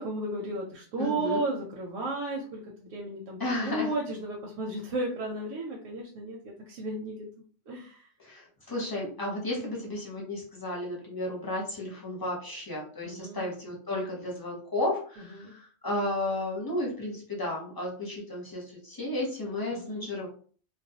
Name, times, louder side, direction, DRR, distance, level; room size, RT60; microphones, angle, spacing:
voice 1, 0.0-7.3 7.7-8.1 13.0-13.4 15.3-15.5 19.7-20.1, right 2 dB, 85° right, -1 dB, 1.0 m, -34 dB
voice 2, 1.0-1.4 3.4-3.9 8.2-20.3, left 1 dB, 20° left, -3 dB, 0.6 m, -33 dB
2.3 x 2.1 x 2.7 m, 0.44 s
omnidirectional pair, 1.3 m